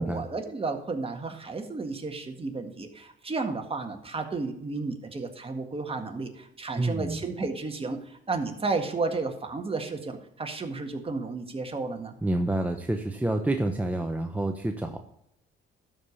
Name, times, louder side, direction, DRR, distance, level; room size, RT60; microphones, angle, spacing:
voice 1, 0.0-12.1, right 3 dB, 30° right, 4 dB, 1.8 m, -32 dB
voice 2, 6.8-7.2 12.2-15.0, right 1 dB, 10° right, 4 dB, 0.9 m, -28 dB
12.5 x 4.9 x 7.0 m, 0.75 s
cardioid pair, 90°, 20 cm